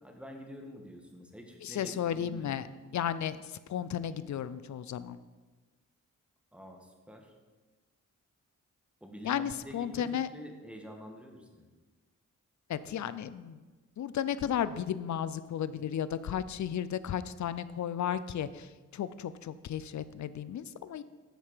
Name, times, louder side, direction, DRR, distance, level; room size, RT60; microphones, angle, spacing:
voice 1, 0.0-2.6 6.5-7.3 9.0-11.7, equal, 5° right, 2 dB, 1.6 m, -47 dB
voice 2, 1.6-2.7 2.9-5.2 9.2-10.3 12.7-13.6 14.0-21.0, left 9 dB, 60° left, 14 dB, 0.5 m, -34 dB
9.3 x 4.4 x 6.7 m, 1.3 s
cardioid pair, 70°, 32 cm